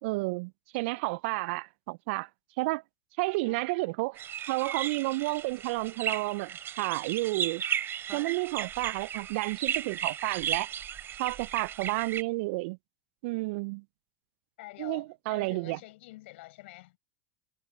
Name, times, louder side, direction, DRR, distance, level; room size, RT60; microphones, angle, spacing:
voice 1, 0.0-2.3 2.6-2.8 3.2-7.6 8.1-10.7 11.2-12.8 13.2-13.8 14.8-15.8, right 24 dB, 65° right, 0.5 m, -31 dB
voice 2, 3.4-3.9 8.1-8.4 14.6-17.0, left 19 dB, 70° left, 5.8 m, -48 dB
sound 1, 4.2-12.2, right 9 dB, 35° right, 3.1 m, -35 dB
hypercardioid pair, 85°, 7 cm